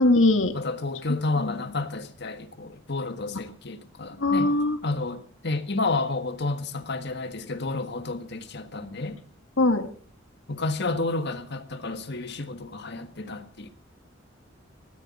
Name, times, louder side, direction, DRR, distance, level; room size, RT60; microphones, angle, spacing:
voice 1, 0.0-0.6 1.4-1.5 3.3-3.4 4.2-4.8 9.6-9.8, left 2 dB, 75° left, 1.9 m, -21 dB
voice 2, 0.5-4.5 4.8-9.2 10.5-13.7, left 3 dB, 55° left, 1.6 m, -30 dB
19.0 x 13.5 x 4.3 m
head